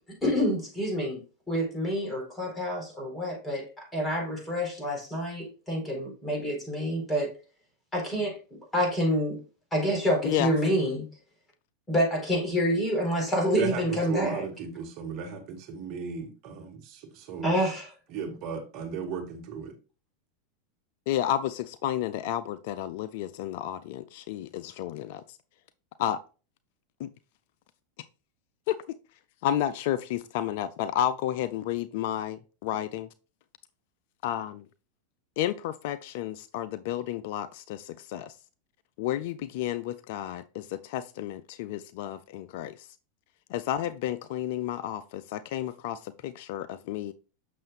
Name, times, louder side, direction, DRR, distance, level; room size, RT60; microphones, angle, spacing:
voice 1, 0.2-1.2 1.5-7.3 7.9-8.4 8.7-9.4 9.7-11.1 11.9-14.4 17.4-17.9, equal, 15° left, 4.2 m, -27 dB
voice 2, 13.6-17.6 18.1-19.7, right 5 dB, 50° right, 1.6 m, -36 dB
voice 3, 21.1-25.4 26.0-26.2 27.0-27.1 28.7-28.8 29.4-33.1 34.2-34.6 35.4-38.3 39.0-42.9 43.5-47.1, left 11 dB, 60° left, 0.4 m, -31 dB
7.5 x 6.4 x 2.4 m
hypercardioid pair, 95°, 0 cm